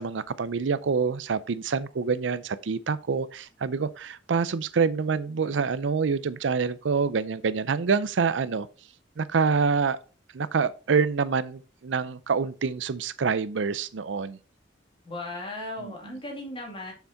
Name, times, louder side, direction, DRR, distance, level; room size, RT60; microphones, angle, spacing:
voice 1, 0.0-8.7 9.2-10.0 10.3-14.4 15.8-15.9, right 5 dB, 80° right, 0.5 m, -26 dB
voice 2, 15.0-16.9, left 1 dB, 30° left, 2.5 m, -36 dB
7.0 x 5.9 x 4.0 m
head